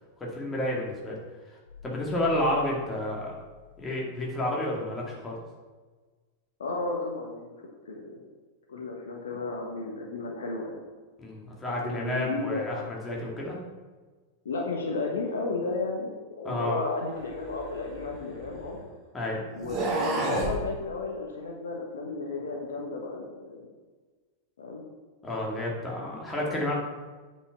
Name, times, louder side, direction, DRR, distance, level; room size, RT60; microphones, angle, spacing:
voice 1, 0.2-1.2 1.8-3.4 3.8-5.4 11.2-13.6 16.4-16.8 19.1-19.4 25.2-26.8, left 1 dB, 15° left, -3 dB, 2.4 m, -30 dB
sound 1, 1.7-4.2 4.6-4.7, left 3 dB, 90° left, 0.6 m, -47 dB
voice 2, 6.6-7.5 7.9-8.2 8.7-10.9 11.6-12.9 14.4-18.8 19.5-23.7 24.6-24.8, left 3 dB, 65° left, 1 dB, 1.2 m, -33 dB
sound 2, 17.3-18.8 19.6-20.6, right 2 dB, 25° right, 1.9 m, -31 dB
8.3 x 5.3 x 5.8 m, 1.4 s
figure-of-eight pair, 90°, 0 cm